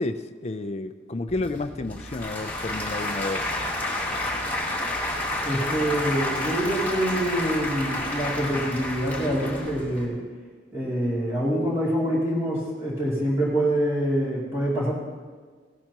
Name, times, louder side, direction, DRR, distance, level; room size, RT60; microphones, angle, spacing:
voice 1, 0.0-3.4, left 2 dB, 35° left, 9 dB, 0.5 m, -31 dB
Applause / Crowd, 1.3-10.1, left 1 dB, 10° left, 2.1 m, -30 dB
voice 2, 5.4-10.2 10.7-14.9, right 1 dB, 15° right, -8 dB, 2.8 m, -25 dB
16.5 x 12.0 x 3.0 m, 1.5 s
head